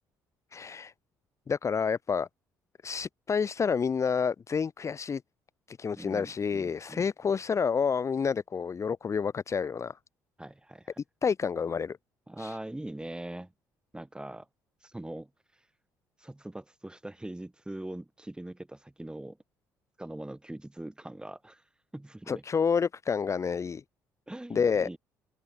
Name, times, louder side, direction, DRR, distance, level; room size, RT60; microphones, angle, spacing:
voice 1, 0.5-0.9 1.5-2.3 2.8-5.2 5.7-10.0 11.2-12.0 12.4-12.5 22.3-23.8 24.5-24.9, left 6 dB, 35° left, 0.8 m, -29 dB
voice 2, 6.0-7.1 10.4-10.9 12.3-13.5 13.9-14.5 14.8-15.3 16.2-19.4 20.0-21.6 21.9-22.4 24.3-25.0, right 1 dB, 10° right, 5.9 m, -42 dB
hypercardioid pair, 60°, 8 cm